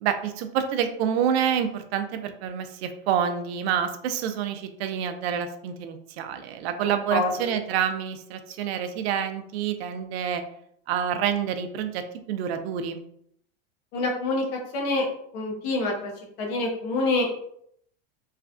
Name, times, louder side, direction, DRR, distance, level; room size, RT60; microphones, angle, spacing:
voice 1, 0.0-10.4 10.9-13.0, right 8 dB, 70° right, 8 dB, 0.5 m, -28 dB
voice 2, 6.8-7.5 13.9-15.1 15.3-16.1 16.4-17.4, left 2 dB, 65° left, 0 dB, 1.0 m, -26 dB
3.2 x 2.2 x 2.5 m, 0.70 s
supercardioid pair, 140°, 33 cm